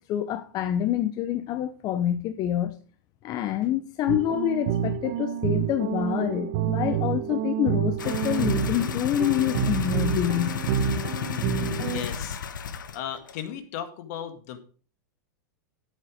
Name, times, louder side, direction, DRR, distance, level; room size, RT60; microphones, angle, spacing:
voice 1, 0.1-2.7 3.2-10.6, left 11 dB, 40° left, 0.7 m, -27 dB
sound 1, 4.1-12.0, right 10 dB, 55° right, 1.0 m, -28 dB
sound 2, 8.0-13.0 13.3-13.4, left 7 dB, 90° left, 1.0 m, -32 dB
voice 2, 11.1-12.4 12.9-14.6, left 9 dB, 60° left, 1.8 m, -36 dB
8.4 x 8.2 x 4.9 m
hypercardioid pair, 115°, 10 cm